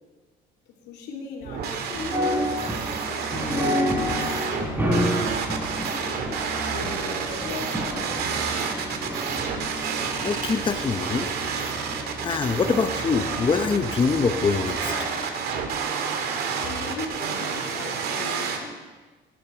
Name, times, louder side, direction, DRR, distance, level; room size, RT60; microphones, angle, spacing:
voice 1, 0.7-5.7 6.3-8.3 16.6-18.8, left 4 dB, 80° left, 0 dB, 3.0 m, -39 dB
sound 1, 1.4-18.6, right 6 dB, 70° right, 2.3 m, -30 dB
sound 2, 1.9-15.2, equal, 10° right, 4.3 m, -30 dB
voice 2, 10.2-11.3 12.2-14.9, left 5 dB, 30° left, 6 dB, 0.9 m, -24 dB
19.0 x 11.5 x 4.6 m, 1.3 s
cardioid pair, 110°, 17 cm